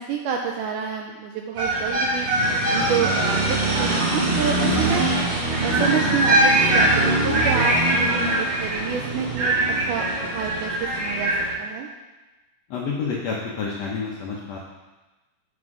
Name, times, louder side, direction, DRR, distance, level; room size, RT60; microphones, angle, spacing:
voice 1, 0.0-2.3 2.7-5.1 5.6-9.5 9.9-11.3 11.6-11.9, right 7 dB, 85° right, 2 dB, 1.9 m, -28 dB
sound 1, 1.6-11.5, right 2 dB, 65° right, 5.4 m, -22 dB
voice 2, 12.7-14.6, left 5 dB, 90° left, -3 dB, 1.4 m, -29 dB
9.4 x 7.4 x 4.8 m, 1.1 s
omnidirectional pair, 4.4 m